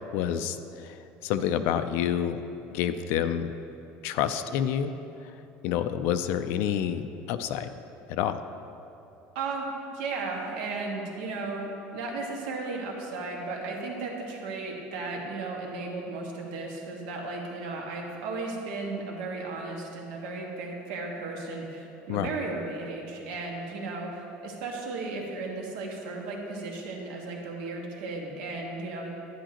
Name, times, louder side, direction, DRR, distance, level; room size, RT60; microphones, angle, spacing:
voice 1, 0.1-2.4 2.7-3.5 4.0-4.9 5.2-5.4 5.6-7.7 8.1-8.4 22.1-22.3, left 9 dB, 60° left, 9 dB, 0.4 m, -28 dB
voice 2, 9.3-9.6 9.9-29.1, right 3 dB, 85° right, 0 dB, 1.5 m, -35 dB
10.0 x 10.0 x 2.9 m, 3.0 s
cardioid pair, 160°, 4 cm